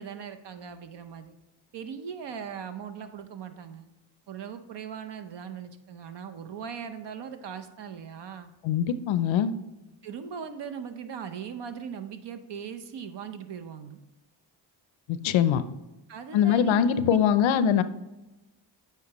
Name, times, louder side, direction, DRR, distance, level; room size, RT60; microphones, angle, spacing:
voice 1, 0.0-1.4 1.7-3.9 4.3-8.5 10.0-14.0 16.1-17.2, right 7 dB, 60° right, 9 dB, 0.8 m, -39 dB
voice 2, 8.6-9.5 15.1-15.6 16.3-17.8, left 8 dB, 70° left, 13 dB, 0.6 m, -22 dB
8.2 x 4.6 x 3.0 m, 1.0 s
supercardioid pair, 55°, 48 cm